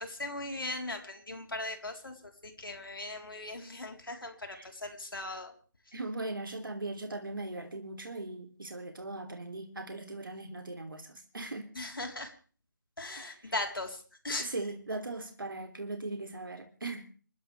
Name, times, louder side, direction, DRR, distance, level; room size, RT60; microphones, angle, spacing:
voice 1, 0.0-5.5 11.8-12.3 13.0-14.5, left 2 dB, 85° left, 3.7 m, -38 dB
voice 2, 5.9-11.7 13.1-13.5 14.4-17.0, right 2 dB, 75° right, 3.0 m, -39 dB
29.5 x 12.0 x 3.4 m
figure-of-eight pair, 155°, 11 cm